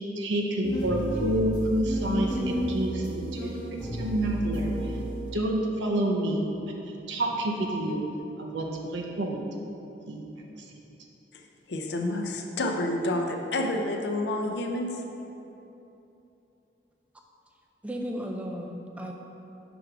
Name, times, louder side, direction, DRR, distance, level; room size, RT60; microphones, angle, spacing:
voice 1, 0.2-3.5 3.9-4.7 5.3-6.5 6.8-8.0 8.4-9.4 10.1-10.2, right 1 dB, 80° right, 0 dB, 0.6 m, -28 dB
sound 1, 0.6-5.3, equal, 20° left, 0.9 m, -32 dB
voice 2, 11.7-15.0, left 1 dB, 70° left, 3 dB, 0.5 m, -29 dB
voice 3, 17.8-19.1, equal, 5° right, 1 dB, 0.3 m, -34 dB
6.0 x 3.3 x 4.8 m, 3.0 s
head